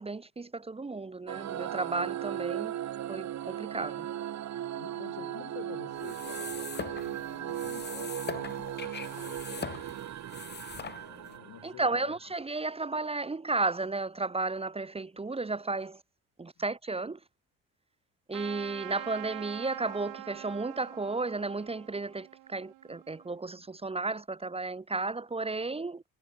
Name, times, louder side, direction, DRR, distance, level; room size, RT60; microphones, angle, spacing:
voice 1, 0.0-2.7 3.1-4.1 11.6-16.0 16.4-17.2 18.3-26.1, right 3 dB, 20° right, 0.9 m, -33 dB
sound 1, 1.3-12.2, right 11 dB, 55° right, 1.3 m, -37 dB
voice 2, 4.8-9.9 10.7-12.2, left 20 dB, 90° left, 3.2 m, -49 dB
sound 2, 5.9-11.4, left 7 dB, 30° left, 0.9 m, -42 dB
Trumpet, 18.3-23.4, right 17 dB, 75° right, 1.0 m, -44 dB
cardioid pair, 80°, 33 cm